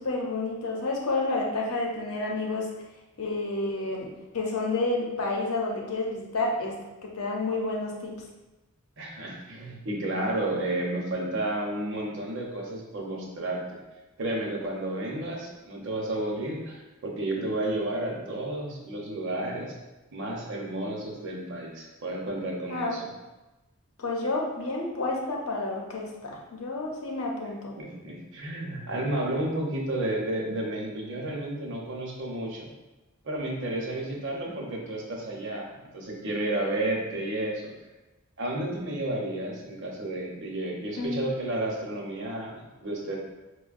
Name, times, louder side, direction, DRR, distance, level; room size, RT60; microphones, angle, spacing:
voice 1, 0.0-2.7 3.2-8.2 22.7-23.0 24.0-27.8 41.0-41.3, left 2 dB, 85° left, -1 dB, 0.7 m, -30 dB
voice 2, 9.0-13.8 14.2-19.7 20.1-23.0 27.8-32.7 33.2-37.7 38.4-43.2, right 1 dB, 60° right, -1 dB, 0.8 m, -32 dB
5.2 x 2.2 x 2.4 m, 1.1 s
head